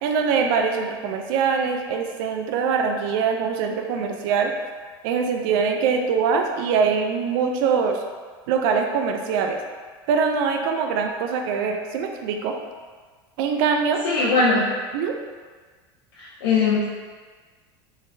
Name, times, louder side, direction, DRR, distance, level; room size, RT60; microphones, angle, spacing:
voice 1, 0.0-4.5 5.0-8.0 8.5-9.6 10.1-12.6 13.4-14.0 14.9-15.2, right 6 dB, 70° right, 4 dB, 0.4 m, -23 dB
voice 2, 14.0-14.6 16.4-16.9, left 4 dB, 90° left, -8 dB, 0.7 m, -19 dB
3.8 x 3.1 x 2.6 m, 1.5 s
supercardioid pair, 115°, 12 cm